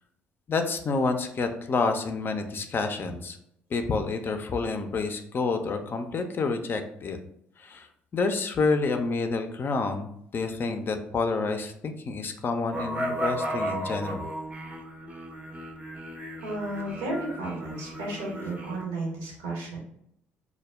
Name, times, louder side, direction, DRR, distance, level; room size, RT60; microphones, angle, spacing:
voice 1, 0.5-3.4 3.7-7.2 7.6-7.9 8.1-14.2, left 4 dB, 40° left, 6 dB, 0.4 m, -28 dB
sound 1, 12.7-18.8, right 1 dB, 20° right, 0.6 m, -34 dB
voice 2, 16.4-19.8, right 2 dB, 80° right, -2 dB, 0.9 m, -33 dB
2.2 x 2.0 x 3.3 m, 0.73 s
hypercardioid pair, 55°, 6 cm